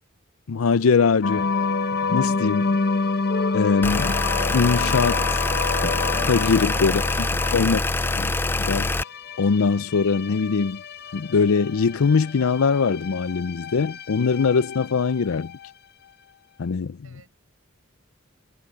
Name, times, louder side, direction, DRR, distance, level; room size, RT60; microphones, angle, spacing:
voice 1, 0.5-1.5 2.1-2.8 3.5-4.2 4.5-5.4 6.3-7.8 8.2-8.3 8.6-8.9 9.4-10.8 11.1-15.5 16.6-17.0, left 5 dB, 90° left, 0.5 m, -22 dB
sound 1, 1.2-15.7, left 4 dB, 50° left, 0.9 m, -29 dB
sound 2, 3.8-9.0, left 2 dB, 10° left, 0.3 m, -24 dB
voice 2, 7.6-8.3 17.0-17.3, right 4 dB, 85° right, 6.8 m, -52 dB
head